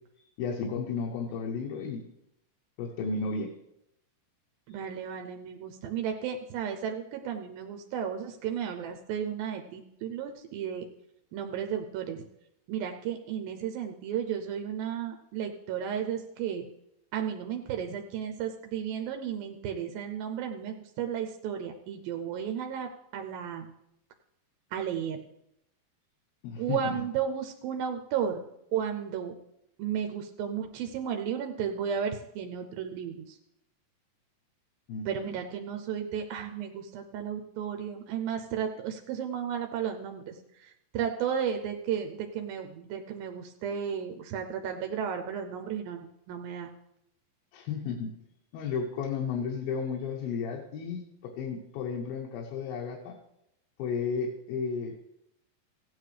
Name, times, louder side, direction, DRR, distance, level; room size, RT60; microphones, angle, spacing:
voice 1, 0.2-2.1 2.8-3.5 26.4-27.0 34.9-35.3 47.5-48.1 48.5-53.2 53.8-54.9, left 5 dB, 85° left, -1 dB, 2.9 m, -33 dB
voice 2, 4.7-10.9 11.3-12.3 12.7-16.7 17.1-23.7 24.7-25.2 26.6-28.4 28.7-29.3 29.8-33.4 35.1-46.7, right 8 dB, 85° right, 4 dB, 2.5 m, -34 dB
16.0 x 9.3 x 3.3 m, 0.81 s
omnidirectional pair, 4.1 m